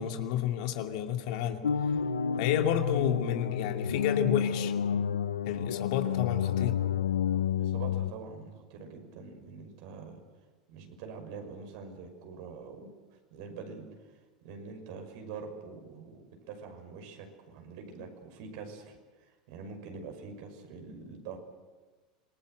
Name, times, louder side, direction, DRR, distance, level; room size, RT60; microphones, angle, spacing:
voice 1, 0.0-1.6 2.4-4.7 5.5-6.8, left 9 dB, 65° left, 5 dB, 2.6 m, -31 dB
sound 1, 1.6-8.1, left 8 dB, 90° left, 0.8 m, -30 dB
voice 2, 7.5-10.2 10.7-12.9 13.3-13.9 14.4-19.0 19.5-21.4, right 5 dB, 65° right, 4 dB, 6.0 m, -44 dB
27.0 x 20.0 x 8.0 m, 1.3 s
hypercardioid pair, 95°, 4 cm